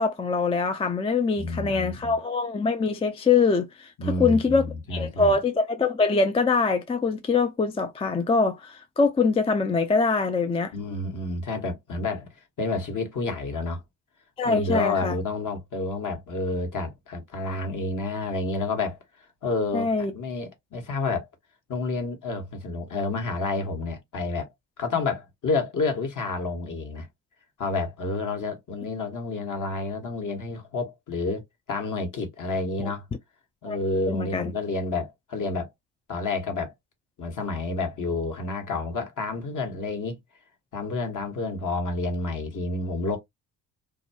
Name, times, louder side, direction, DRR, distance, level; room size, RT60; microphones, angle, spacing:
voice 1, 0.0-3.9 4.2-10.7 14.4-15.1 19.7-20.1 32.8-32.9 33.7-33.8 34.1-34.5, left 4 dB, 15° left, 0.3 m, -23 dB
voice 2, 1.4-2.2 4.0-5.4 10.7-13.8 14.4-19.0 19.4-21.3 21.7-24.5 24.8-27.1 27.6-33.0 33.6-35.7 36.1-36.7 37.2-40.2 40.7-43.2, left 3 dB, 45° left, 1.3 m, -29 dB
2.5 x 2.3 x 2.7 m
supercardioid pair, 70°, 41 cm